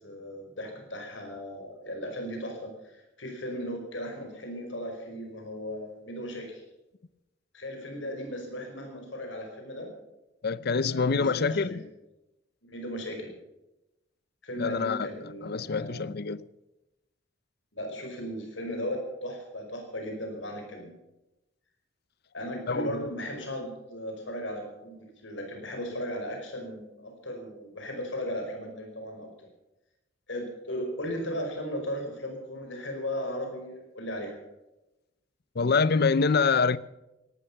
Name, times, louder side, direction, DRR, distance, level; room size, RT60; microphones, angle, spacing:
voice 1, 0.0-6.6 7.5-9.9 10.8-11.9 12.7-13.3 14.4-16.2 17.7-20.9 22.3-29.3 30.3-34.4, equal, 80° left, 5.3 m, -36 dB
voice 2, 10.4-11.8 14.6-15.1 15.4-16.4 22.7-23.1 35.6-36.8, left 4 dB, 55° left, 0.6 m, -25 dB
18.0 x 12.5 x 5.6 m
head